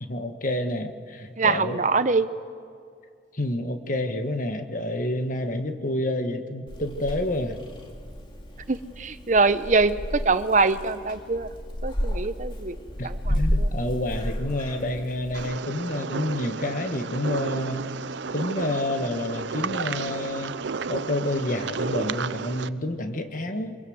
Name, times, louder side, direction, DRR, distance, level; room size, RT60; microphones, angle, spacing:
voice 1, 0.0-1.8 3.3-7.6 13.0-17.9 18.3-20.5 20.9-23.8, left 1 dB, 45° left, 6 dB, 1.5 m, -29 dB
voice 2, 1.4-2.3 8.7-11.5 11.8-12.8 13.0-13.7, right 4 dB, 40° right, 12 dB, 0.8 m, -24 dB
Purr / Meow, 6.7-15.5, equal, 25° left, 2.4 m, -32 dB
sound 1, 15.3-22.7, right 5 dB, 75° right, 0.6 m, -32 dB
24.0 x 23.0 x 8.0 m, 2.2 s
head